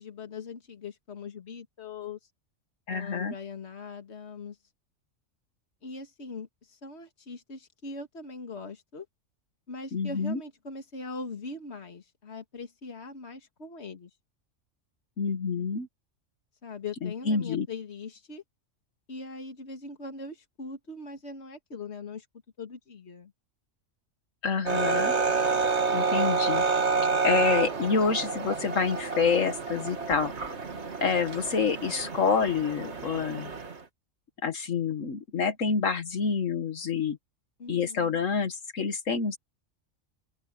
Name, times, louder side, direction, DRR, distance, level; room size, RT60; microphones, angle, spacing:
voice 1, 0.0-2.2 2.9-4.6 5.8-9.1 9.7-14.1 16.6-18.4 19.1-22.3 22.6-23.3 37.6-38.2, left 4 dB, 55° left, 2.3 m, -41 dB
voice 2, 2.9-3.3 9.9-10.4 15.2-15.9 17.0-17.7 24.4-25.1 25.9-26.6 27.2-30.3 31.0-33.5 34.4-37.2 37.7-39.4, left 5 dB, 80° left, 1.8 m, -27 dB
sound 1, 24.6-33.8, right 4 dB, 60° right, 2.2 m, -29 dB
omnidirectional pair, 1.3 m